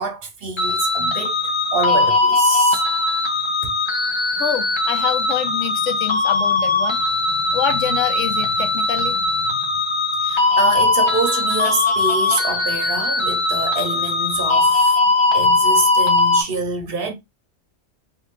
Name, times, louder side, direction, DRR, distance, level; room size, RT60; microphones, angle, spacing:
voice 1, 0.0-2.8 10.2-15.0 15.3-17.1, right 4 dB, 60° right, 0.7 m, -26 dB
sound 1, 0.6-16.4, left 3 dB, 45° left, 0.3 m, -19 dB
voice 2, 4.4-9.6, left 8 dB, 80° left, 0.9 m, -26 dB
2.6 x 2.4 x 3.0 m
omnidirectional pair, 1.2 m